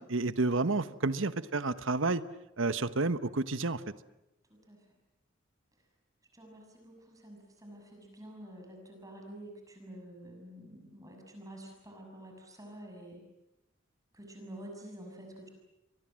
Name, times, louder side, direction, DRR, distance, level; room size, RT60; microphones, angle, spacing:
voice 1, 0.0-2.2 2.6-3.8, right 3 dB, 70° right, 14 dB, 1.1 m, -30 dB
voice 2, 4.5-4.8 6.3-13.2 14.1-15.5, right 1 dB, 15° right, 2 dB, 6.6 m, -49 dB
30.0 x 24.0 x 7.6 m, 0.90 s
head